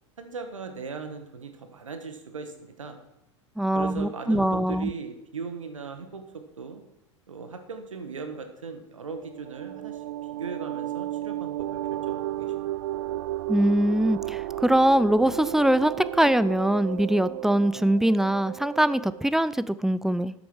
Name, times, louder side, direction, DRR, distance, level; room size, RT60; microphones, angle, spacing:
voice 1, 0.2-3.0 3.7-6.8 7.3-10.0 10.4-12.5, right 5 dB, 80° right, 7 dB, 1.6 m, -38 dB
voice 2, 3.6-4.9 13.5-20.3, right 1 dB, ahead, 16 dB, 0.5 m, -22 dB
sound 1, 9.1-19.4, right 14 dB, 65° right, 0.5 m, -33 dB
13.0 x 8.9 x 4.8 m, 0.86 s
figure-of-eight pair, 80°, 16 cm